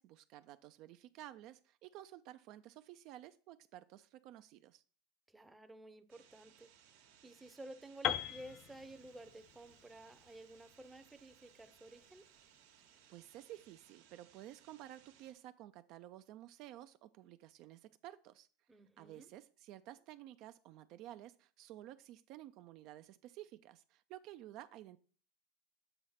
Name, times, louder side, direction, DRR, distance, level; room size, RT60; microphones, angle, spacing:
voice 1, 0.0-4.8 13.1-18.5 19.0-25.0, right 13 dB, 55° right, 0.3 m, -53 dB
voice 2, 5.3-6.7 7.2-12.2 18.7-19.3, right 1 dB, 10° right, 0.6 m, -53 dB
sound 1, 6.1-15.3, right 9 dB, 85° right, 1.1 m, -66 dB
Piano, 8.0-12.0, left 11 dB, 45° left, 0.4 m, -41 dB
7.9 x 3.1 x 5.6 m
supercardioid pair, 125°, 0 cm